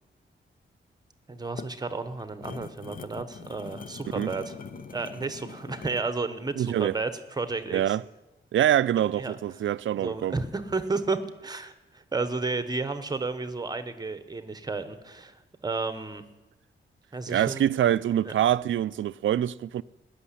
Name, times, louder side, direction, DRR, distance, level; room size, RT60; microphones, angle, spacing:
sound 1, 1.3-6.1, left 5 dB, 45° left, 0.7 m, -42 dB
voice 1, 1.3-4.5 4.9-8.0 9.1-9.4 10.0-16.2 17.1-17.7 18.2-18.3, right 3 dB, 20° right, 1.0 m, -32 dB
voice 2, 6.6-6.9 7.7-8.0 8.5-10.3 17.3-19.8, right 11 dB, 75° right, 0.4 m, -25 dB
18.5 x 6.6 x 10.0 m
wide cardioid pair, 165°, 20 cm